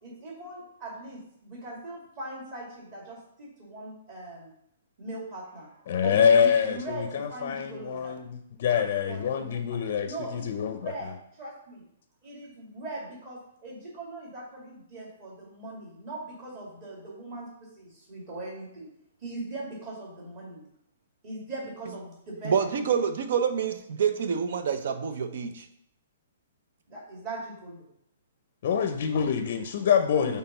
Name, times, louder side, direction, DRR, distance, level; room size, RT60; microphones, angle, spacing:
voice 1, 0.0-4.5 5.0-8.1 8.7-9.8 10.0-11.8 12.2-17.5 17.7-18.9 19.2-20.6 21.2-22.9 26.9-27.9 30.1-30.4, right 2 dB, 30° right, -4 dB, 2.5 m, -40 dB
voice 2, 5.9-10.9 28.6-30.4, left 7 dB, 45° left, 7 dB, 0.6 m, -25 dB
voice 3, 22.4-25.7, right 7 dB, 55° right, 8 dB, 0.8 m, -27 dB
6.3 x 3.5 x 5.5 m, 0.73 s
hypercardioid pair, 170°, 0 cm